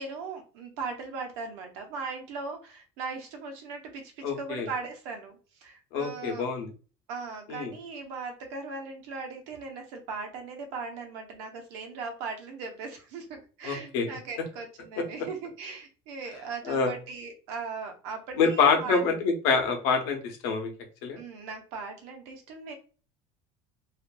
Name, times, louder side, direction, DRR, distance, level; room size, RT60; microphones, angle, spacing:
voice 1, 0.0-6.5 7.1-19.0 21.2-22.7, right 4 dB, 80° right, 4 dB, 0.8 m, -38 dB
voice 2, 4.2-4.7 5.9-6.7 7.5-7.7 13.6-14.1 15.0-15.1 16.6-16.9 18.4-20.7 21.0-21.2, left 5 dB, 75° left, 4 dB, 0.8 m, -26 dB
2.5 x 2.5 x 2.3 m, 0.36 s
cardioid pair, 175°, 13 cm